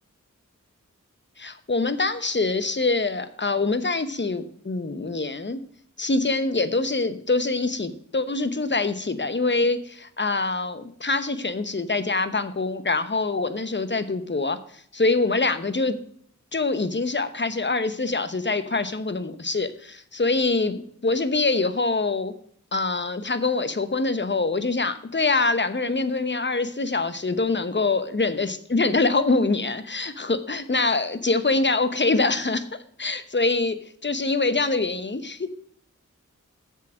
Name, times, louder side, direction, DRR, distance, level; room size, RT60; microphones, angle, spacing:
voice 1, 1.4-5.6 6.0-16.0 16.5-22.3 22.7-32.7 33.0-33.7 34.0-35.5, left 3 dB, 35° left, 11 dB, 0.9 m, -24 dB
7.4 x 7.1 x 6.3 m, 0.63 s
wide cardioid pair, 50°, 31 cm